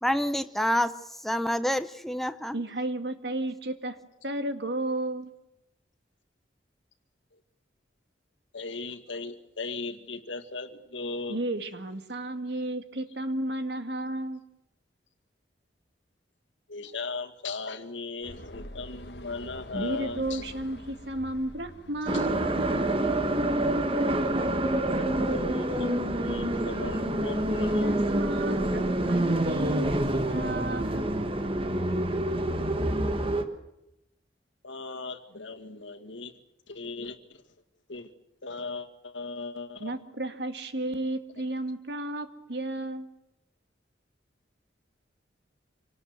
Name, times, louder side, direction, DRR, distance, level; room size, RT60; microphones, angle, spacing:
voice 1, 0.0-0.9 1.2-2.6, equal, ahead, 10 dB, 0.8 m, -27 dB
voice 2, 2.5-4.0 4.2-5.3 11.3-14.4 19.7-22.4 27.8-31.1 39.8-43.1, right 1 dB, 65° right, 8 dB, 1.9 m, -33 dB
voice 3, 8.5-11.4 16.7-20.4 22.1-22.3 25.3-28.0 29.9-30.1 34.6-36.3 36.7-37.4 37.9-38.1 38.4-39.9, left 3 dB, 90° left, 6 dB, 2.0 m, -38 dB
sound 1, 18.2-23.3, left 1 dB, 60° left, 1.5 m, -45 dB
sound 2, 22.1-33.4, right 1 dB, 30° right, 1.5 m, -27 dB
26.5 x 18.5 x 8.0 m, 0.87 s
head